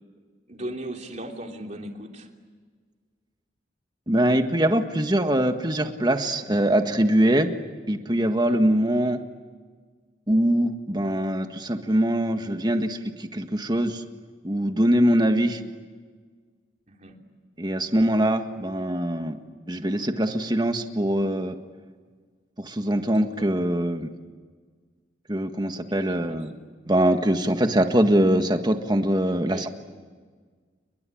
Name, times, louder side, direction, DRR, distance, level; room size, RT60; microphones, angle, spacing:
voice 1, 0.5-2.3 8.3-8.6 15.4-15.6 17.0-17.2 23.4-23.5 25.9-26.4 29.5-29.7, right 1 dB, 40° right, 2 dB, 3.2 m, -37 dB
voice 2, 4.1-7.5 7.9-9.2 10.3-14.0 14.4-15.6 17.6-19.4 19.7-21.5 22.6-24.1 25.3-26.5 26.9-29.7, right 1 dB, 25° right, 7 dB, 1.6 m, -23 dB
29.5 x 22.0 x 8.7 m, 1.5 s
head